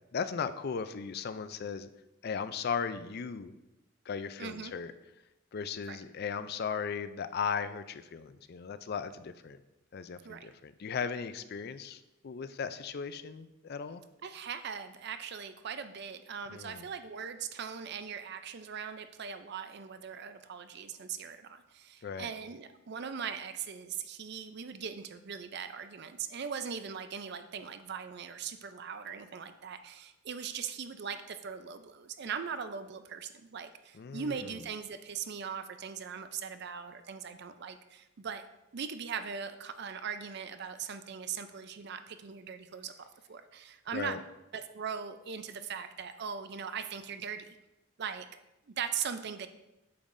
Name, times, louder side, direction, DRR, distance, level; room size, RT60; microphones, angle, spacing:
voice 1, 0.1-1.9 2.2-3.5 4.1-4.9 5.5-9.6 9.9-14.0 16.5-16.8 22.0-22.3 34.0-34.4 43.9-44.2, left 6 dB, 50° left, 12 dB, 0.4 m, -37 dB
voice 2, 4.4-4.7 5.9-6.0 10.2-10.5 14.2-38.4 38.7-44.2 44.5-47.6 48.0-48.4 48.7-49.5, right 7 dB, 55° right, 10 dB, 0.5 m, -40 dB
8.5 x 7.2 x 2.6 m, 0.97 s
head